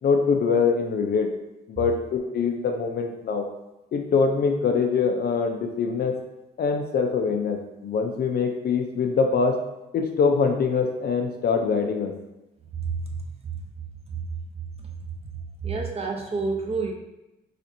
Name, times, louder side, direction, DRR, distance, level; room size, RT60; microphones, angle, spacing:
voice 1, 0.0-1.3 1.7-3.5 3.9-6.2 6.6-9.6 9.9-12.1, left 5 dB, 50° left, 4 dB, 0.5 m, -23 dB
voice 2, 12.7-13.2 13.4-13.6 14.1-14.2 14.8-15.1 15.6-16.9, right 4 dB, 30° right, 2 dB, 0.6 m, -29 dB
4.2 x 2.4 x 2.6 m, 0.95 s
cardioid pair, 90°, 20 cm